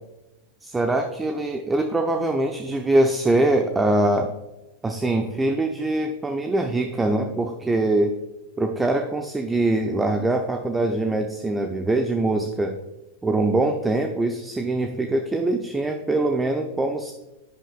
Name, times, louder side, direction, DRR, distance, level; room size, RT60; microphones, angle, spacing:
voice 1, 0.6-4.3 4.8-8.2 8.6-12.7 13.2-17.1, right 2 dB, 10° right, 5 dB, 0.7 m, -23 dB
10.5 x 10.0 x 2.4 m, 1.0 s
figure-of-eight pair, 90°, 0 cm